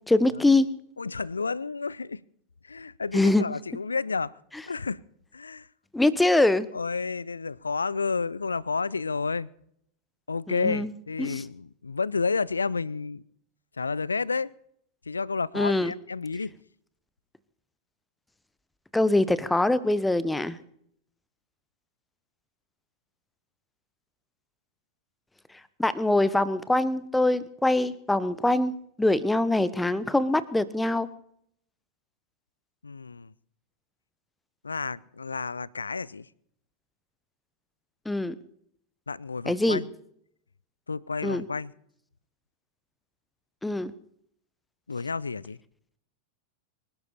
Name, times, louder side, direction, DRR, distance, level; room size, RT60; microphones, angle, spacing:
voice 1, 0.1-0.7 3.1-3.4 5.9-6.7 10.5-10.9 11.2-11.4 15.5-15.9 18.9-20.6 25.8-31.1 38.0-38.3 39.5-39.8 41.2-41.4 43.6-43.9, left 2 dB, 5° left, 1.0 m, -23 dB
voice 2, 1.0-2.2 2.6-4.4 4.7-5.0 5.3-5.7 6.7-9.5 10.3-13.2 13.8-14.5 15.1-16.5 32.8-33.3 34.6-36.3 39.1-39.9 40.9-41.7 44.9-45.6, left 4 dB, 75° left, 0.5 m, -31 dB
24.5 x 11.5 x 4.3 m
figure-of-eight pair, 90°, 0 cm